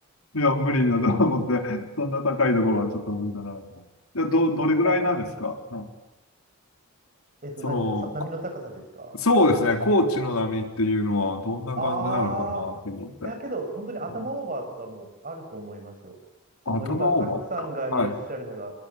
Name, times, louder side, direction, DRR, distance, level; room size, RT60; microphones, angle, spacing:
voice 1, 0.3-3.9 4.1-5.9 7.6-8.1 9.1-13.3 16.7-18.1, left 2 dB, 80° left, 5 dB, 3.8 m, -24 dB
voice 2, 4.6-4.9 7.4-9.3 11.8-12.6 13.2-16.2 16.7-18.7, right 2 dB, 40° right, 4 dB, 6.9 m, -33 dB
30.0 x 22.0 x 8.5 m, 0.92 s
head